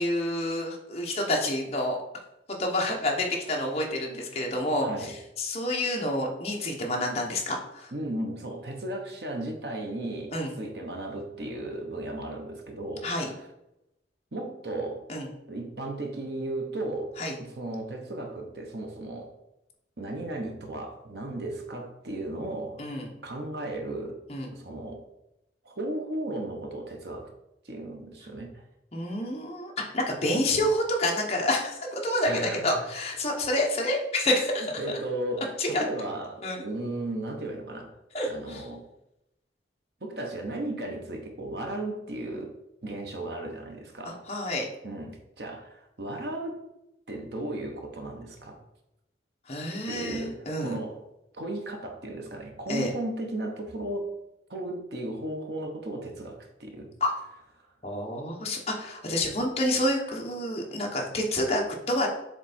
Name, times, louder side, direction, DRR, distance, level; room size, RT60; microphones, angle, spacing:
voice 1, 0.0-2.0 2.6-7.9 10.3-10.5 13.0-13.3 15.1-15.3 17.2-17.3 22.8-23.1 24.3-24.5 28.9-34.7 35.6-35.8 36.4-36.6 38.1-38.7 44.0-44.7 49.5-50.8 52.7-52.9 57.0-57.1 57.8-62.1, left 1 dB, 35° left, 0 dB, 1.1 m, -28 dB
voice 2, 4.8-5.1 7.9-10.3 10.6-13.3 14.3-15.0 15.5-17.1 17.4-19.3 20.0-22.8 23.2-24.2 24.5-25.0 25.6-27.3 27.6-28.6 32.3-32.9 34.3-34.4 34.8-37.9 38.3-38.8 40.0-42.5 42.8-44.3 44.8-46.6 47.1-48.6 49.9-51.0 51.3-54.1 54.5-56.9, right 1 dB, 60° right, 3 dB, 1.1 m, -35 dB
7.2 x 3.4 x 4.3 m, 0.88 s
head